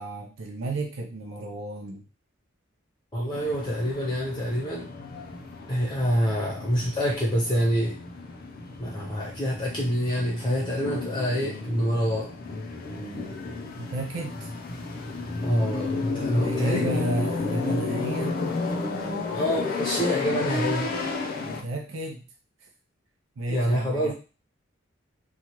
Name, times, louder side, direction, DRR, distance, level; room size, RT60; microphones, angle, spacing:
voice 1, 0.0-2.0 13.8-14.5 16.4-18.4 21.4-22.2 23.4-24.1, right 1 dB, 75° right, 1 dB, 0.5 m, -32 dB
voice 2, 3.1-4.9 5.7-8.0 8.8-12.3 15.4-16.9 19.3-20.9 23.5-24.1, equal, 25° left, -4 dB, 0.8 m, -26 dB
sound 1, 3.3-21.6, left 3 dB, 50° left, 0.5 m, -32 dB
2.9 x 2.3 x 2.9 m, 0.33 s
head